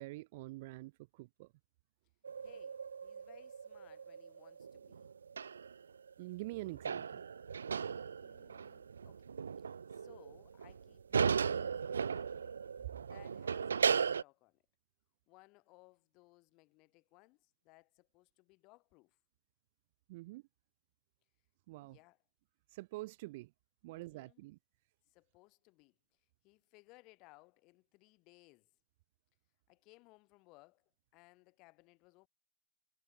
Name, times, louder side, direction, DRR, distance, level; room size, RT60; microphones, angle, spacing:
voice 1, 0.0-1.5 6.2-7.2 20.1-20.4 21.7-22.0 22.7-23.5 23.8-24.6, right 20 dB, 45° right, 0.4 m, -46 dB
sound 1, 2.2-6.1 6.4-14.2, right 6 dB, 80° right, 0.7 m, -37 dB
voice 2, 2.4-5.1 8.2-12.6 13.1-14.6 15.3-19.2 21.8-22.2 23.9-24.5 25.1-28.7 29.7-32.3, left 25 dB, 35° left, 4.1 m, -64 dB
hypercardioid pair, 125°, 0 cm